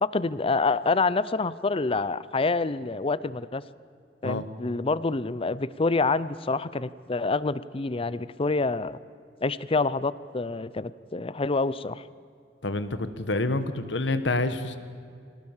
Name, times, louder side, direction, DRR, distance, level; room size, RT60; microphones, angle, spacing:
voice 1, 0.0-3.6 4.2-9.0 9.4-12.0, left 3 dB, 30° left, 17 dB, 0.6 m, -27 dB
voice 2, 12.6-14.8, left 2 dB, 85° left, 11 dB, 1.5 m, -27 dB
23.5 x 18.5 x 7.3 m, 2.3 s
head